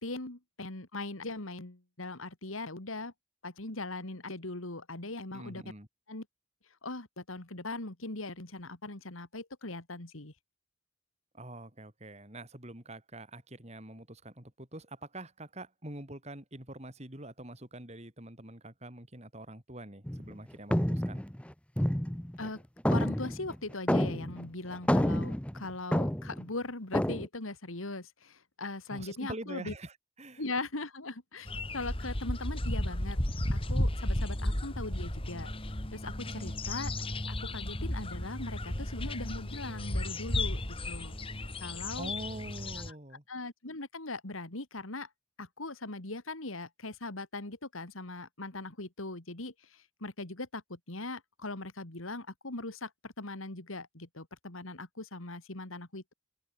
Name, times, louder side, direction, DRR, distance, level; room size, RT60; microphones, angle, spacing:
voice 1, 0.0-3.1 3.4-5.6 6.1-6.2 6.8-10.3 22.4-22.6 22.9-29.7 30.4-33.2 33.5-36.9 37.3-41.2 41.6-42.1 43.3-45.1 45.4-56.1, left 2 dB, 85° left, 3.0 m, -40 dB
voice 2, 5.3-5.9 11.3-21.2 28.9-30.4 36.3-36.7 42.0-43.2, right 1 dB, 30° right, 3.9 m, -45 dB
sound 1, 20.1-20.4 20.7-22.5 22.9-24.5 24.7-26.4 26.9-27.3, equal, 5° left, 1.0 m, -29 dB
sound 2, 31.5-42.9, left 1 dB, 25° left, 2.6 m, -34 dB
open air
head